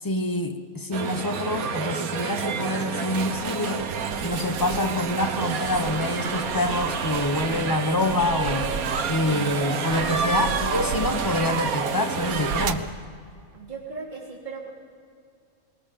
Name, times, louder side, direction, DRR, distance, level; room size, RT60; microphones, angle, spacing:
voice 1, 0.0-3.9 4.2-8.7 9.1-12.8, left 2 dB, 15° left, 6 dB, 1.1 m, -26 dB
sound 1, 0.9-12.7, right 6 dB, 90° right, 1.5 m, -29 dB
sound 2, 3.2-5.0 5.5-9.3 9.7-11.5 12.1-13.0, right 5 dB, 65° right, 1.2 m, -37 dB
voice 2, 13.5-14.7, right 4 dB, 35° right, -4 dB, 3.4 m, -38 dB
21.5 x 19.0 x 7.1 m, 2.2 s
omnidirectional pair, 1.5 m